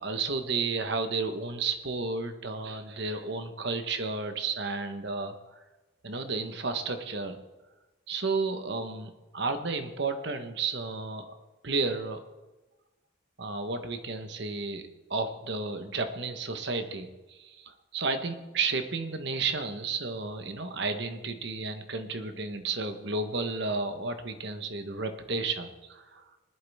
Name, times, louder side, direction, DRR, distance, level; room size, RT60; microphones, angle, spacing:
voice 1, 0.0-5.6 6.0-7.4 8.1-11.3 11.6-12.2 13.4-14.8 15.1-26.2, right 3 dB, 55° right, 7 dB, 1.2 m, -32 dB
20.0 x 11.5 x 3.6 m, 1.1 s
head